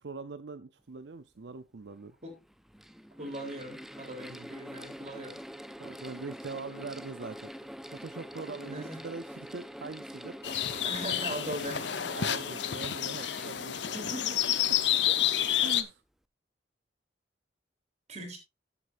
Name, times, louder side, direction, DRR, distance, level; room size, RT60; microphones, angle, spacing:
voice 1, 0.0-2.1 4.3-4.5 5.8-10.3 12.0-14.0 14.7-14.8 15.0-15.2 15.6-16.0, right 4 dB, 70° right, 0.6 m, -42 dB
Mechanical fan, 1.5-1.6 2.4-15.1, equal, ahead, 0.6 m, -45 dB
voice 2, 3.2-5.4 8.5-9.0 10.8-12.1 13.9-14.5 18.1-18.4, right 1 dB, 40° right, 3.5 m, -40 dB
sound 1, 10.4-15.8, left 11 dB, 75° left, 0.9 m, -29 dB
14.5 x 7.8 x 2.6 m
head